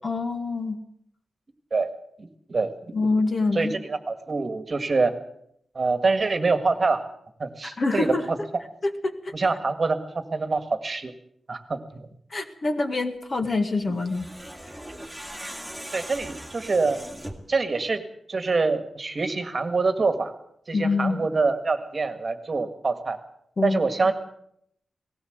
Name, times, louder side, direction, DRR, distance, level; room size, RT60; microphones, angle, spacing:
voice 1, 0.0-0.8 2.9-3.7 7.8-8.2 8.8-9.3 12.3-14.3 20.7-21.2 23.6-23.8, left 3 dB, 35° left, 6 dB, 1.8 m, -25 dB
voice 2, 2.2-2.7 3.5-5.1 5.7-7.0 7.4-8.4 9.3-11.1 11.5-12.1 13.9-14.0 15.9-17.0 17.5-18.0 18.3-20.3 20.7-23.2 23.6-24.1, right 3 dB, 30° right, 8 dB, 1.8 m, -25 dB
sound 1, 13.9-17.5, right 1 dB, ahead, 2.4 m, -39 dB
18.5 x 17.5 x 8.0 m, 0.72 s
wide cardioid pair, 180°, 0 cm